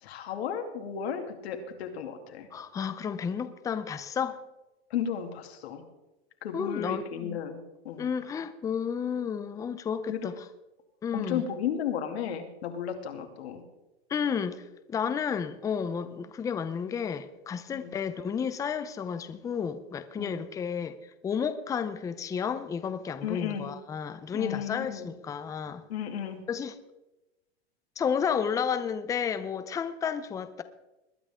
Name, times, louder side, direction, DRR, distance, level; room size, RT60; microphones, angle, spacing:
voice 1, 0.0-2.5 4.9-5.8 6.4-7.6 7.8-8.1 10.1-10.3 11.1-13.6 16.1-16.2 17.7-17.9 20.2-20.3 23.2-23.7 24.3-25.1 25.9-26.4, left 8 dB, 80° left, 4 dB, 2.7 m, -34 dB
voice 2, 2.5-4.4 6.5-7.4 8.0-10.3 11.0-11.4 14.1-20.9 21.2-25.8 26.5-26.8 28.0-30.6, left 7 dB, 10° left, 11 dB, 0.5 m, -32 dB
21.0 x 10.5 x 3.7 m, 0.99 s
supercardioid pair, 150°, 31 cm